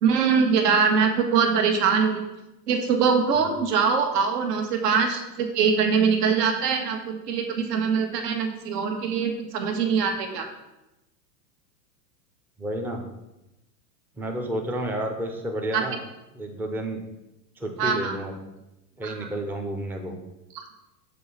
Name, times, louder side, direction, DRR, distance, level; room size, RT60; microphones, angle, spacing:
voice 1, 0.0-2.2 2.7-10.4 15.7-15.8 17.8-18.1 19.0-19.3 20.5-20.6, right 6 dB, 75° right, 4 dB, 1.3 m, -23 dB
voice 2, 12.6-13.1 14.2-16.0 16.3-17.0 17.6-18.4 19.0-20.2, right 1 dB, 5° right, 2 dB, 0.5 m, -30 dB
6.7 x 4.1 x 5.4 m, 0.96 s
hypercardioid pair, 120°, 49 cm